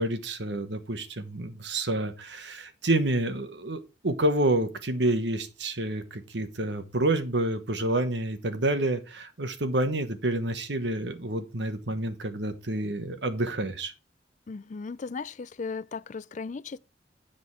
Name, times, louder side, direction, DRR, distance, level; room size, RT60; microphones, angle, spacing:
voice 1, 0.0-13.9, right 1 dB, 80° right, 1.3 m, -28 dB
voice 2, 14.5-16.8, left 4 dB, 45° left, 0.4 m, -36 dB
10.5 x 5.2 x 4.8 m
head